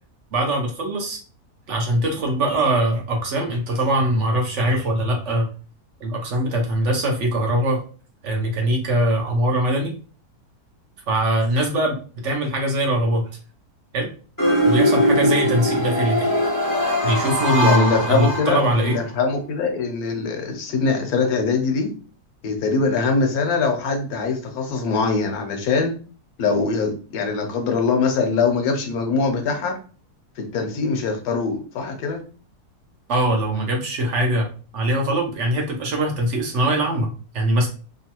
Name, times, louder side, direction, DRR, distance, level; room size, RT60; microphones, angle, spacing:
voice 1, 0.3-1.2 1.7-5.5 6.0-7.8 8.2-9.9 11.1-12.0 12.2-13.3 13.9-14.1 14.7-16.3 17.0-19.0 33.1-34.5 34.7-37.7, right 1 dB, 60° right, 0.8 m, -22 dB
sound 1, 14.4-19.0, equal, 25° left, 0.4 m, -21 dB
voice 2, 17.6-21.9 22.4-25.9 26.4-29.8 30.4-32.2, left 4 dB, 70° left, 1.1 m, -22 dB
3.0 x 2.2 x 2.8 m
omnidirectional pair, 1.7 m